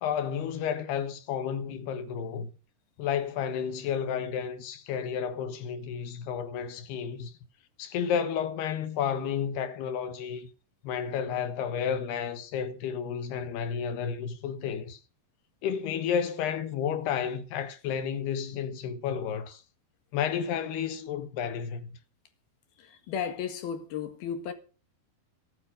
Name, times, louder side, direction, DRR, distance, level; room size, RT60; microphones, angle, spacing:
voice 1, 0.0-2.5 3.0-7.3 7.8-10.5 10.8-15.0 15.6-19.6 20.1-21.9, left 7 dB, 90° left, 3.6 m, -31 dB
voice 2, 22.8-24.5, left 8 dB, 70° left, 3.6 m, -34 dB
14.0 x 14.0 x 5.0 m
omnidirectional pair, 4.5 m